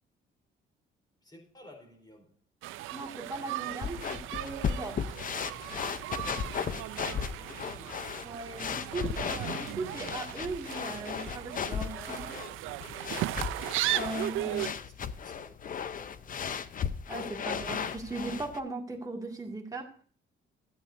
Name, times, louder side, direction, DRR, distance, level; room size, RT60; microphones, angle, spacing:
voice 1, 1.2-2.4 7.1-8.0 11.8-13.4 14.3-16.6, equal, 20° left, 3.7 m, -51 dB
sound 1, 2.6-14.7, right 16 dB, 85° right, 0.4 m, -37 dB
voice 2, 2.9-5.1 8.2-12.3 14.0-14.6 17.1-19.9, right 3 dB, 20° right, 2.1 m, -38 dB
sound 2, 3.8-18.6, left 7 dB, 45° left, 0.6 m, -36 dB
13.0 x 8.8 x 2.6 m
cardioid pair, 90°, 20 cm